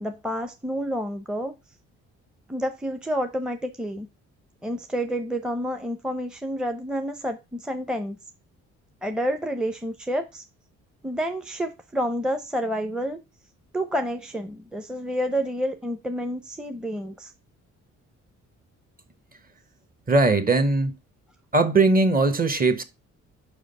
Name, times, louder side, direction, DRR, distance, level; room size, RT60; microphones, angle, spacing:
voice 1, 0.0-1.5 2.5-4.1 4.6-8.2 9.0-10.4 11.0-13.2 13.7-17.3, equal, 5° right, 0.7 m, -29 dB
voice 2, 20.1-21.0 21.5-22.8, right 3 dB, 30° right, 1.2 m, -20 dB
5.4 x 5.0 x 5.3 m
cardioid pair, 90°, 30 cm